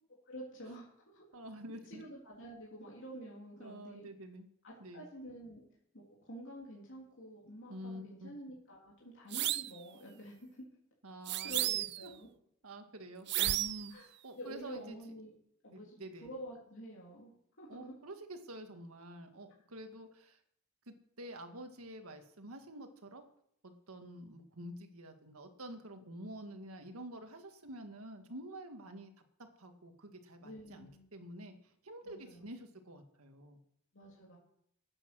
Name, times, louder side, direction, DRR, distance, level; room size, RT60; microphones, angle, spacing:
voice 1, 0.3-1.4 1.9-4.1 4.6-5.6 6.0-10.6 11.4-12.3 13.9-14.1 14.4-15.3 15.6-17.3 17.6-17.9 30.4-31.1 32.0-32.5 33.9-34.4, equal, 60° left, -4 dB, 3.3 m, -49 dB
voice 2, 1.3-2.0 3.6-4.5 4.8-5.0 7.7-8.3 11.0-12.1 12.6-15.0 15.7-16.3 17.7-20.4 20.9-23.2 23.6-33.6, right 1 dB, 85° right, 6 dB, 1.8 m, -48 dB
sound 1, 9.3-9.8 11.3-12.1 13.3-13.9, right 15 dB, 50° right, 0.4 m, -33 dB
13.5 x 8.9 x 6.2 m, 0.71 s
head